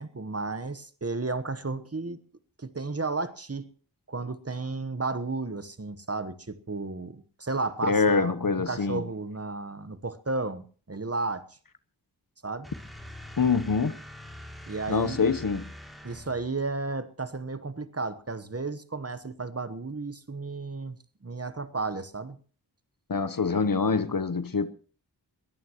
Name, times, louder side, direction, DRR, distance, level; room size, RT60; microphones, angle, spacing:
voice 1, 0.0-2.2 2.6-3.7 4.1-11.5 12.4-12.7 14.7-15.3 16.0-21.0 21.2-22.4, right 3 dB, 40° right, 1.1 m, -33 dB
voice 2, 7.9-9.0 13.4-13.9 14.9-15.6 23.1-24.7, left 4 dB, 60° left, 1.0 m, -25 dB
sound 1, 12.6-16.6, left 1 dB, ahead, 2.7 m, -44 dB
21.0 x 16.0 x 3.0 m
wide cardioid pair, 45°, 39 cm